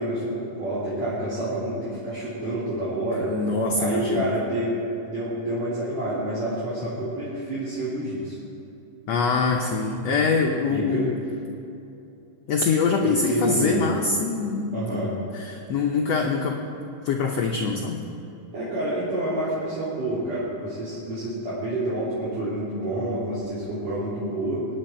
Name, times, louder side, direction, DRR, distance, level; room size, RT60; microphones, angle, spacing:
voice 1, 0.0-3.4 3.8-4.8 5.0-8.4 10.7-11.1 13.0-13.9 14.7-15.2 18.5-24.7, right 1 dB, 50° right, -10 dB, 4.1 m, -28 dB
voice 2, 3.3-4.3 7.0-7.1 9.1-11.1 12.5-16.6 17.0-18.0, left 4 dB, 85° left, 1 dB, 1.5 m, -24 dB
24.0 x 10.0 x 4.4 m, 2.7 s
omnidirectional pair, 4.2 m